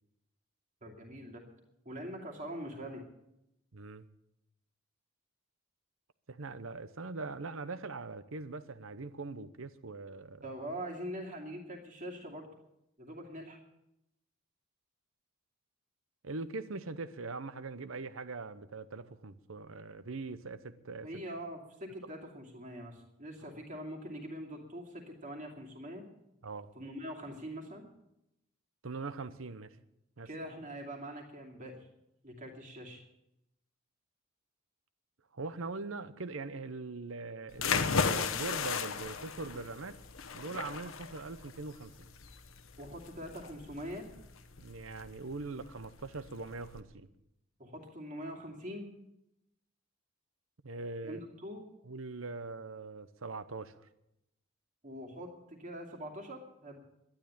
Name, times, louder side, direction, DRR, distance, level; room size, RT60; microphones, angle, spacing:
voice 1, 0.8-1.4 1.8-3.1 10.4-12.5 13.0-13.6 21.0-26.0 26.7-27.8 30.2-31.9 32.2-33.0 42.8-44.1 47.6-48.9 51.0-51.6 54.8-56.8, equal, 35° right, 0 dB, 2.5 m, -43 dB
voice 2, 3.7-4.1 6.3-10.5 16.2-21.1 26.4-26.7 28.8-29.8 30.2-30.3 35.3-40.0 40.3-42.1 44.6-47.1 50.6-51.2 51.9-53.9, right 3 dB, 70° right, 14 dB, 0.8 m, -42 dB
sound 1, 37.5-46.8, left 5 dB, 70° left, 1.0 m, -36 dB
12.0 x 10.5 x 8.6 m, 0.85 s
head